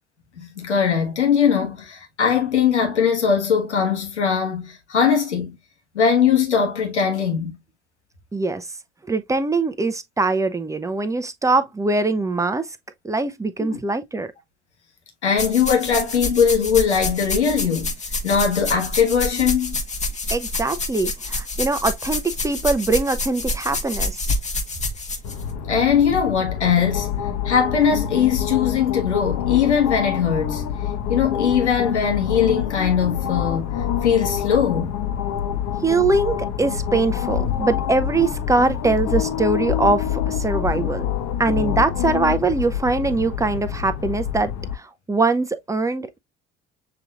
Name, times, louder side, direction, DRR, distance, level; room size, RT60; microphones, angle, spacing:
voice 1, 0.4-5.5 5.9-7.6 13.7-13.8 15.2-17.9 18.2-19.8 25.7-27.1 27.4-30.6 31.1-33.7 34.0-34.9, left 7 dB, 85° left, 1.3 m, -20 dB
voice 2, 8.3-8.7 9.1-12.8 13.0-14.3 20.3-24.3 35.8-41.1 41.4-46.2, right 3 dB, 10° right, 0.7 m, -22 dB
sound 1, 15.4-25.4, left 2 dB, 20° left, 1.2 m, -27 dB
sound 2, 25.2-44.8, left 9 dB, 55° left, 1.0 m, -26 dB
6.8 x 3.1 x 2.4 m
figure-of-eight pair, 60°, 33 cm